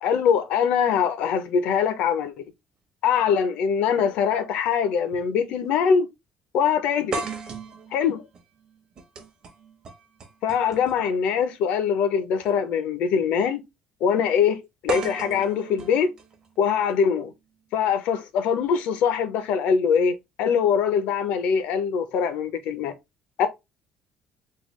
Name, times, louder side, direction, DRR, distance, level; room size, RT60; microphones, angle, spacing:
voice 1, 0.0-2.4 3.0-6.1 6.5-7.2 7.9-8.2 10.4-13.6 14.0-14.6 14.8-16.1 16.6-17.3 17.7-22.9 23.4-23.5, left 7 dB, 70° left, 0.6 m, -23 dB
sound 1, 3.9-4.0 5.1-5.3 5.6-5.7 7.1-11.1 12.3-12.5 14.9-16.9, right 4 dB, 35° right, 0.8 m, -36 dB
3.6 x 2.3 x 3.1 m
cardioid pair, 170°, 2 cm